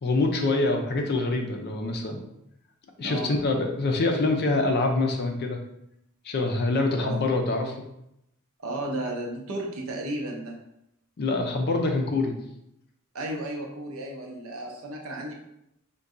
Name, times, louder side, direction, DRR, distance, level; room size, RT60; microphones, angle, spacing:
voice 1, 0.0-2.2 3.0-5.6 6.2-7.7 11.2-12.3, left 2 dB, 50° left, 4 dB, 0.4 m, -25 dB
voice 2, 3.0-3.3 7.0-7.3 8.6-10.5 13.1-15.3, right 1 dB, 75° right, 0 dB, 0.6 m, -33 dB
2.6 x 2.2 x 3.6 m, 0.80 s
head